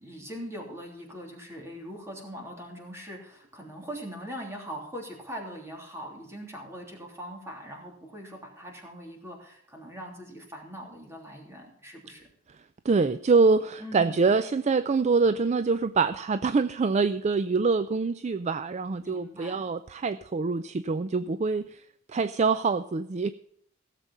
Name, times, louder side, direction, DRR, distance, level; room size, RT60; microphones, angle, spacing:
voice 1, 0.0-12.3 13.8-14.3 19.0-19.7, equal, 15° right, 0 dB, 3.2 m, -41 dB
voice 2, 12.8-21.8 22.1-23.3, right 4 dB, 35° right, 13 dB, 0.4 m, -25 dB
16.5 x 7.5 x 5.4 m, 0.68 s
head